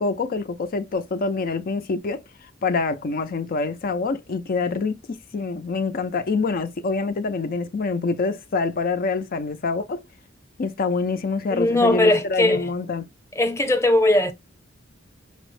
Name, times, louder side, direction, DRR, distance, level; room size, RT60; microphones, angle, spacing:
voice 1, 0.0-2.2 2.6-10.0 10.6-13.0, left 4 dB, 45° left, 0.4 m, -26 dB
voice 2, 11.5-12.7 13.3-14.3, left 1 dB, 15° left, 0.7 m, -19 dB
5.6 x 2.1 x 3.1 m
head